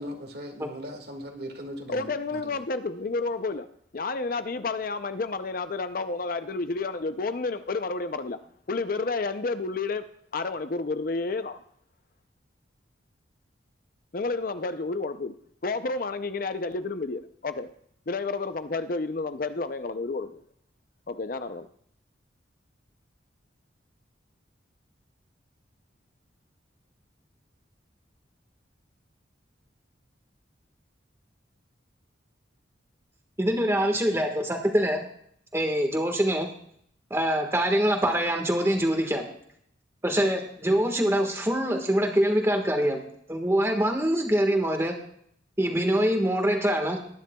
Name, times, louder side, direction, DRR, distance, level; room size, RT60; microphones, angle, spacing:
voice 1, 0.0-2.4, equal, 55° right, 1.9 m, -39 dB
voice 2, 1.9-3.7 3.9-8.4 8.7-11.6 14.1-15.3 15.6-17.7 18.1-20.4 21.1-21.7, left 3 dB, 45° left, 0.5 m, -30 dB
voice 3, 33.4-35.0 35.5-36.5 37.1-39.2 40.0-43.0 43.3-45.0 45.6-47.0, equal, 15° right, 1.4 m, -24 dB
19.5 x 10.5 x 2.3 m
head